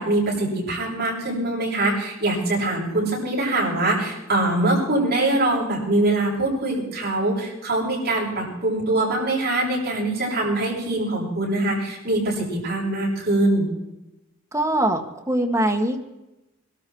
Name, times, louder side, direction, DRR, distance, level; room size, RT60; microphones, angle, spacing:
voice 1, 0.0-13.7, right 2 dB, 45° right, -4 dB, 7.7 m, -23 dB
voice 2, 14.5-16.0, right 1 dB, 15° right, 2 dB, 1.7 m, -22 dB
22.5 x 13.0 x 4.7 m, 0.97 s
head